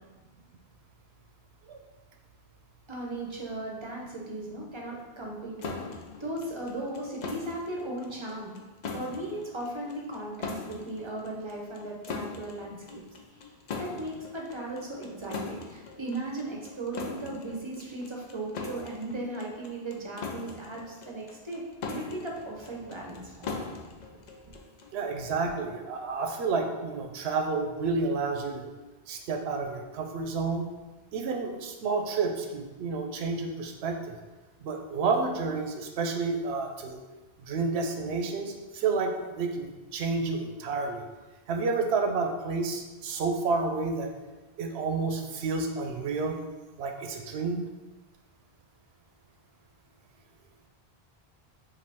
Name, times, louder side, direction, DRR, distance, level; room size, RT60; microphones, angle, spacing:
voice 1, 2.9-5.7 6.2-8.5 8.9-13.0 13.8-23.6, right 2 dB, 30° right, -1 dB, 0.7 m, -37 dB
sound 1, 5.6-25.0, left 4 dB, 55° left, 0.5 m, -41 dB
voice 2, 24.9-28.7 29.1-30.6 31.1-34.2 34.6-37.0 37.4-41.0 41.5-44.1 44.6-46.4 46.8-47.6, right 4 dB, 90° right, 4 dB, 0.8 m, -30 dB
5.0 x 2.6 x 3.4 m, 1.2 s
omnidirectional pair, 1.0 m